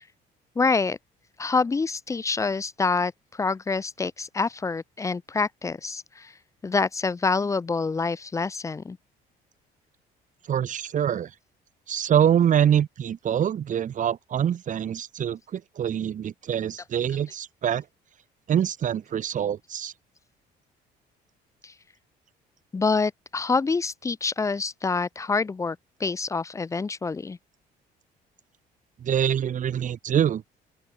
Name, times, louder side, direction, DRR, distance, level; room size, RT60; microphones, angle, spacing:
voice 1, 0.6-1.0 1.4-3.1 3.4-6.3 6.6-9.0 21.6-21.7 22.7-27.4, left 4 dB, 20° left, 0.5 m, -26 dB
voice 2, 10.5-11.3 11.9-17.8 18.5-19.9 29.0-30.4, right 9 dB, 50° right, 2.7 m, -25 dB
open air
cardioid pair, 110°, 17 cm